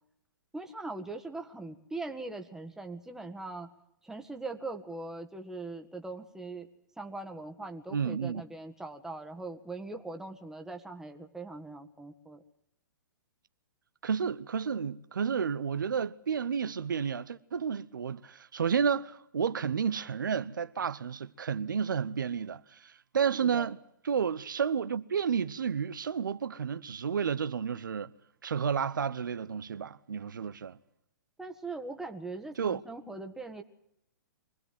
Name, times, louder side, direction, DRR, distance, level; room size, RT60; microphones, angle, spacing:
voice 1, 0.5-3.7 4.0-6.7 7.0-12.4 23.5-23.7 31.4-33.6, right 3 dB, 5° right, 1.8 m, -41 dB
voice 2, 7.9-8.4 14.0-23.8 24.0-28.1 28.4-30.8 32.6-32.8, right 7 dB, 75° right, 0.9 m, -31 dB
24.5 x 19.0 x 7.7 m
hypercardioid pair, 120°, 11 cm